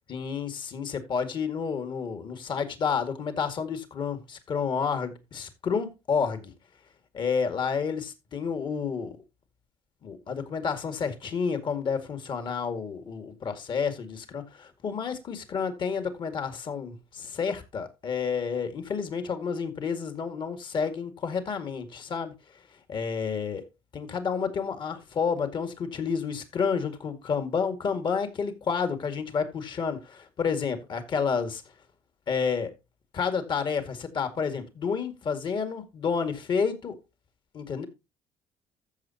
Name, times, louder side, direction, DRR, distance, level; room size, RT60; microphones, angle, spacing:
voice 1, 0.1-6.5 7.1-9.2 10.0-22.3 22.9-23.6 23.9-31.6 32.3-32.7 33.1-36.9 37.5-37.9, left 6 dB, 50° left, 2.1 m, -30 dB
14.5 x 6.7 x 2.9 m
supercardioid pair, 90°, 11 cm